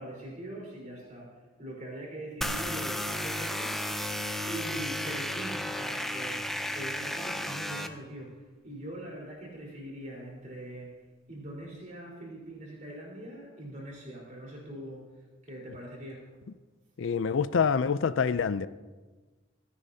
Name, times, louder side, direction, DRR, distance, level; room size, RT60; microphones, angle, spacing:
voice 1, 0.0-4.0 4.4-10.9 11.3-15.1 15.4-16.3, right 1 dB, 40° right, 4.2 m, -42 dB
sound 1, 2.4-7.9, left 1 dB, ahead, 0.6 m, -33 dB
voice 2, 17.0-18.7, left 6 dB, 65° left, 0.4 m, -26 dB
25.0 x 9.8 x 2.8 m
head